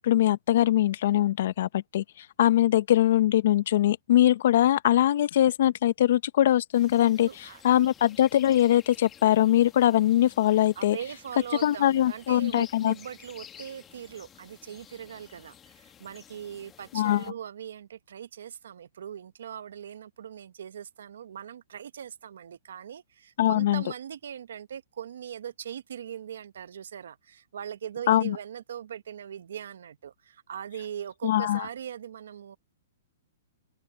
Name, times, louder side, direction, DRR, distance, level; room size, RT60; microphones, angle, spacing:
voice 1, 0.0-11.0 11.6-12.9 16.9-17.2 23.4-23.8 28.1-28.4 31.2-31.7, left 12 dB, 60° left, 0.9 m, -22 dB
sound 1, 6.7-17.3, left 9 dB, 20° left, 1.9 m, -52 dB
voice 2, 7.2-7.9 10.8-32.6, right 9 dB, 75° right, 1.2 m, -40 dB
open air
hypercardioid pair, 140°, 0 cm